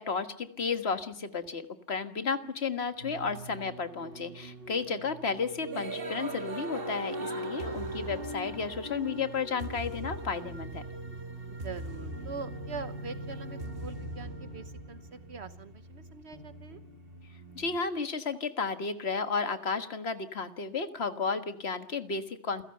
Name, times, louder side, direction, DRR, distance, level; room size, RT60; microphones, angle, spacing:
voice 1, 0.0-10.8 17.6-22.6, left 5 dB, 65° left, 9 dB, 1.8 m, -33 dB
sound 1, 3.0-17.8, right 2 dB, 55° right, 2.4 m, -42 dB
sound 2, 6.7-10.3 11.8-15.5 16.3-17.5, left 1 dB, 25° left, 1.9 m, -42 dB
voice 2, 11.5-16.8, right 4 dB, 70° right, 11 dB, 1.3 m, -43 dB
28.0 x 16.0 x 7.8 m, 0.78 s
omnidirectional pair, 1.2 m